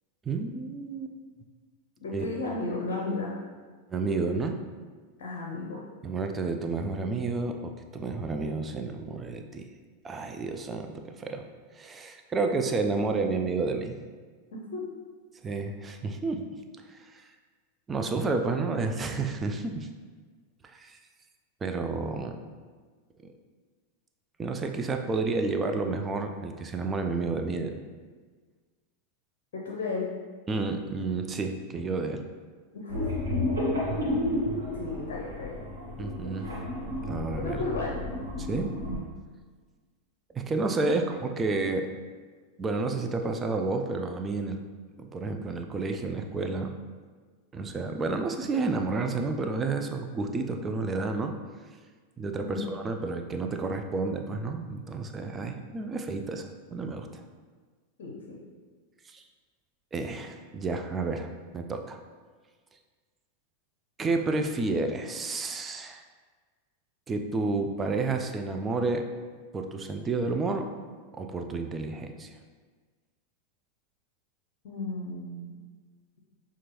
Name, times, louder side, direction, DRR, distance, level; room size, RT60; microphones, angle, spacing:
voice 1, 0.2-1.1 2.1-2.2 3.9-4.6 6.0-9.7 10.0-11.4 11.8-13.9 15.4-16.4 16.9-17.3 17.9-19.9 20.6-21.0 21.6-22.4 23.2-23.3 24.4-27.8 30.5-32.2 36.0-36.5 37.0-37.6 38.4-38.7 40.3-41.9 42.6-44.6 45.0-46.7 47.5-51.3 52.2-57.2 59.1-59.2 59.9-62.0 64.0-66.0 67.1-69.1 69.5-70.7 71.1-72.3, right 3 dB, 20° right, 5 dB, 0.3 m, -30 dB
voice 2, 2.0-3.4 5.2-5.8 14.5-14.8 29.5-30.1 32.7-33.1 34.7-35.6 37.3-38.0 40.8-41.0 52.4-52.7 58.0-58.4 74.6-75.6, left 3 dB, 55° left, -2 dB, 0.6 m, -34 dB
sound 1, 32.9-39.0, left 1 dB, 65° right, 1.3 m, -31 dB
5.9 x 2.4 x 2.9 m, 1.5 s
figure-of-eight pair, 90°, 0 cm